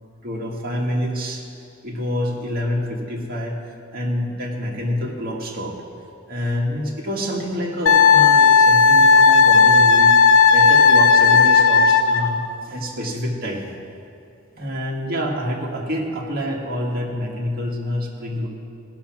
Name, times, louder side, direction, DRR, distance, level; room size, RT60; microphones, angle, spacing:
voice 1, 0.2-1.4 1.8-3.6 3.9-5.8 6.3-13.7 14.5-18.5, equal, 50° right, -2 dB, 1.8 m, -27 dB
Wind instrument woodwind instrument, 7.9-12.3, left 5 dB, 85° left, 0.7 m, -13 dB
15.5 x 6.0 x 6.0 m, 2.6 s
head